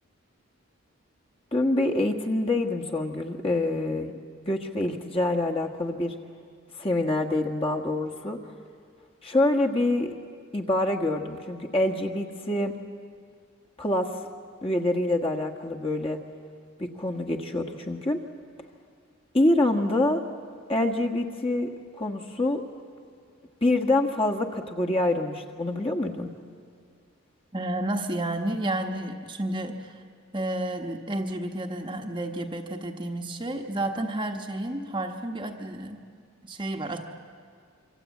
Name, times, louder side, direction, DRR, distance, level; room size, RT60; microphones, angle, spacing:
voice 1, 1.5-4.1 4.5-6.1 6.8-8.4 9.2-10.1 10.5-12.8 13.8-14.1 14.6-16.2 16.8-18.2 19.3-20.2 20.7-21.7 22.0-22.6 23.6-26.3, left 1 dB, 25° left, 2 dB, 1.5 m, -26 dB
voice 2, 27.5-30.0 30.3-36.0 36.4-37.0, right 1 dB, 20° right, 3 dB, 1.1 m, -31 dB
26.0 x 24.5 x 8.4 m, 2.2 s
head